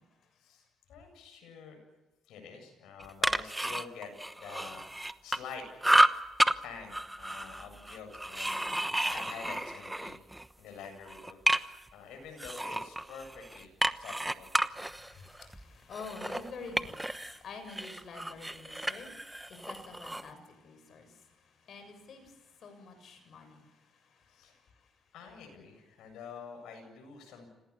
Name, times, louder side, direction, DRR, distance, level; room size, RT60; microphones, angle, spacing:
voice 1, 0.9-1.8 2.3-4.1 4.4-5.7 6.6-8.8 9.1-10.2 10.6-11.4 11.9-14.5 24.3-24.5 25.1-27.5, left 6 dB, 85° left, 4 dB, 8.0 m, -47 dB
sound 1, 3.0-5.5 5.8-6.5 6.9-10.5 10.8-11.9 12.4-17.4 17.7-20.3, right 1 dB, 10° right, 1.0 m, -31 dB
voice 2, 14.8-21.3 21.6-23.7 24.1-24.6, left 4 dB, 60° left, 7 dB, 7.3 m, -48 dB
27.0 x 18.5 x 8.8 m, 1.1 s
cardioid pair, 90°, 0 cm